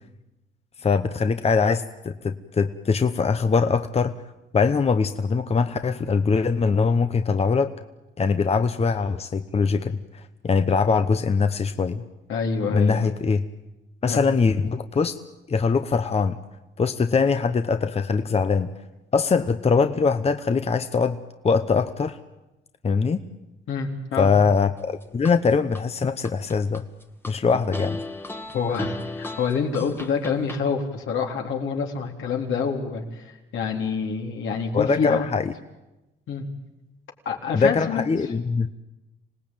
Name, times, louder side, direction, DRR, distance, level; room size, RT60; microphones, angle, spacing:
voice 1, 0.8-4.2 4.5-7.7 8.2-12.0 12.7-13.4 14.0-15.2 15.5-16.4 16.8-18.7 19.1-21.2 21.4-22.2 22.8-23.2 24.2-26.8 27.3-28.0 34.7-35.5 37.5-38.7, left 5 dB, 30° left, 9 dB, 1.0 m, -22 dB
voice 2, 12.3-13.1 14.1-14.2 23.7-24.3 27.5-27.6 28.5-35.3 36.3-36.5 37.3-38.1, left 5 dB, 75° left, 1 dB, 3.9 m, -27 dB
sound 1, 24.8-25.8 26.2-27.3 27.7-30.6, left 2 dB, 10° left, 1.5 m, -35 dB
26.5 x 18.5 x 9.1 m, 1.0 s
cardioid pair, 90°, 20 cm